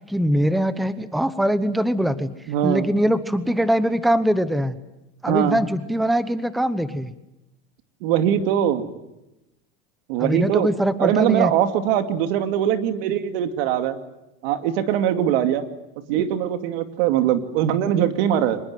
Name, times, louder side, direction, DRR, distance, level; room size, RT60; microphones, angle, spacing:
voice 1, 0.1-2.3 2.6-4.8 5.2-7.1 10.2-11.5, equal, ahead, 13 dB, 0.9 m, -22 dB
voice 2, 2.5-2.9 5.3-5.6 8.0-8.9 10.1-10.7 11.0-14.0 14.4-15.6 16.1-18.6, right 10 dB, 75° right, 8 dB, 2.6 m, -21 dB
25.0 x 21.0 x 9.4 m, 0.93 s
cardioid pair, 150°, 29 cm